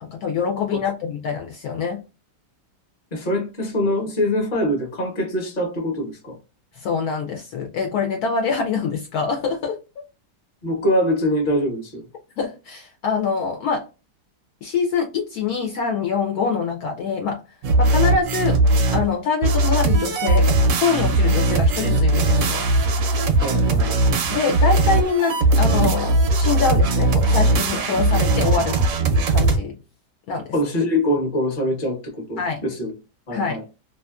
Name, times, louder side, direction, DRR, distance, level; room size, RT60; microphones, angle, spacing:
voice 1, 0.0-2.0 6.7-9.8 12.4-13.9 14.6-17.4 17.8-18.6 18.9-22.7 24.3-29.7 30.3-30.5 32.4-32.6 33.3-33.6, left 5 dB, 70° left, 1.0 m, -24 dB
voice 2, 3.1-6.4 10.6-12.1 23.4-23.9 30.5-32.9 33.3-33.6, left 1 dB, 35° left, 1.0 m, -23 dB
sound 1, 17.6-19.1 19.4-29.6, right 2 dB, 70° right, 0.8 m, -19 dB
2.8 x 2.4 x 2.3 m
omnidirectional pair, 1.8 m